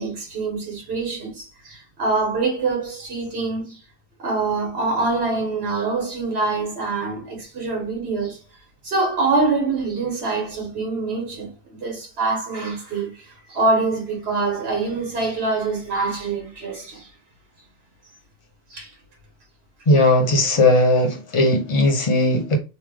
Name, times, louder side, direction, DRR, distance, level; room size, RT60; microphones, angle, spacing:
voice 1, 0.0-3.8 4.2-8.4 8.8-17.1 18.7-18.9, right 3 dB, 85° right, 1.6 m, -25 dB
voice 2, 19.9-22.6, left 2 dB, 35° left, 0.8 m, -17 dB
3.4 x 2.2 x 3.4 m
omnidirectional pair, 1.0 m